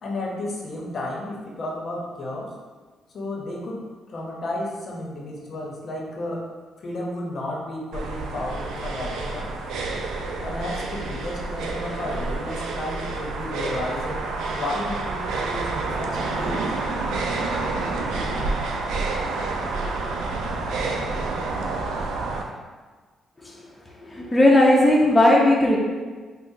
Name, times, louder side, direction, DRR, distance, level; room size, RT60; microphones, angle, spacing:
voice 1, 0.0-2.5 3.1-6.4 6.8-9.5 10.4-16.6, left 1 dB, 50° left, -2 dB, 0.7 m, -32 dB
sound 1, 7.9-22.4, right 3 dB, 85° right, 0.4 m, -28 dB
voice 2, 24.1-25.8, left 1 dB, 15° left, -3 dB, 0.5 m, -16 dB
5.4 x 2.0 x 2.7 m, 1.4 s
cardioid pair, 90°, 0 cm